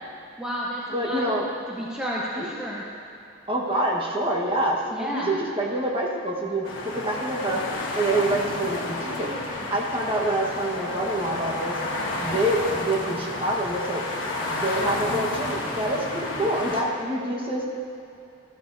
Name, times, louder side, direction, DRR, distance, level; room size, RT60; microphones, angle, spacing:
voice 1, 0.4-1.3 1.7-2.8 4.9-5.4, equal, 5° right, -6 dB, 0.8 m, -31 dB
voice 2, 0.9-1.4 2.3-2.5 3.5-7.6 7.9-9.3 9.7-11.8 12.2-14.0 14.5-17.7, right 1 dB, 25° right, -2 dB, 1.3 m, -26 dB
sound 1, 6.6-16.8, left 2 dB, 65° left, 1.6 m, -31 dB
14.0 x 13.5 x 2.7 m, 2.6 s
head